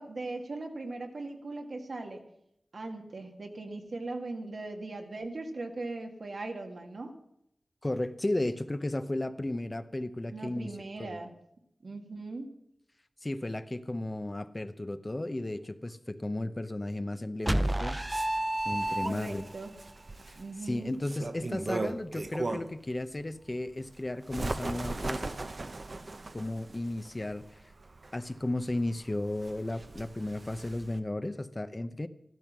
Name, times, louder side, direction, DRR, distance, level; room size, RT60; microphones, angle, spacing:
voice 1, 0.0-2.2 2.7-7.1 10.3-11.3 11.8-12.5 19.0-19.8 20.4-20.9, right 2 dB, 75° right, 4 dB, 1.8 m, -39 dB
voice 2, 7.8-10.7 11.0-11.2 13.2-18.0 18.6-19.4 20.3-25.3 26.3-27.4 28.1-32.1, left 1 dB, 30° left, 11 dB, 0.7 m, -34 dB
Bird, 17.4-22.9 23.3-31.0, right 2 dB, 55° right, 0.9 m, -39 dB
sound 1, 17.5-19.6, right 1 dB, 20° right, 0.6 m, -29 dB
14.0 x 12.5 x 6.1 m, 0.77 s
wide cardioid pair, 90°, 0 cm